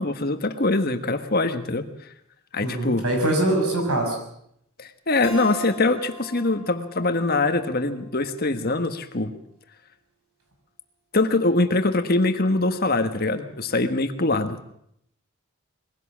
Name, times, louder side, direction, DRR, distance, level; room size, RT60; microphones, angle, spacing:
voice 1, 0.0-1.9 2.5-3.0 4.8-9.3 11.1-14.7, left 2 dB, 45° left, 8 dB, 1.5 m, -23 dB
voice 2, 2.6-4.2, right 1 dB, 85° right, 3 dB, 6.1 m, -23 dB
Keyboard (musical), 5.2-8.5, right 1 dB, 10° right, 4.8 m, -41 dB
21.5 x 16.5 x 7.4 m, 0.72 s
head